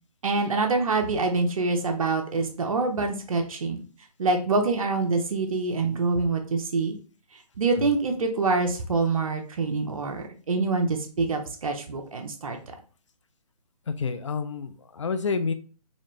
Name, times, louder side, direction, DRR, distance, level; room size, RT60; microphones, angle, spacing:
voice 1, 0.2-3.8 4.2-7.0 7.6-12.6, right 3 dB, 55° right, 4 dB, 0.8 m, -25 dB
voice 2, 14.0-15.5, left 5 dB, 50° left, 9 dB, 0.4 m, -29 dB
4.1 x 2.5 x 3.1 m, 0.38 s
hypercardioid pair, 160°, 21 cm